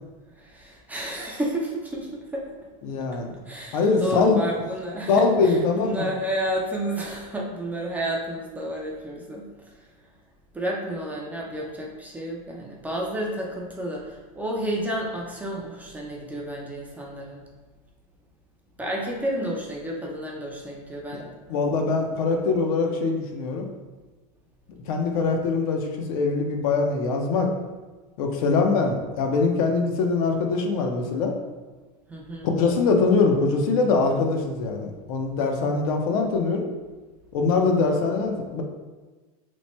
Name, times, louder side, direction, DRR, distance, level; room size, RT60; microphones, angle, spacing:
voice 1, 0.4-2.4 3.5-9.5 10.5-17.4 18.8-21.6 32.1-32.5, right 1 dB, 10° right, -2 dB, 0.3 m, -31 dB
voice 2, 2.8-3.3 3.7-4.4 5.1-6.1 21.1-21.2 21.5-23.7 24.9-27.5 28.2-31.3 32.6-36.7 37.3-38.6, left 4 dB, 75° left, 3 dB, 0.6 m, -23 dB
3.0 x 2.1 x 4.1 m, 1.3 s
supercardioid pair, 150°, 18 cm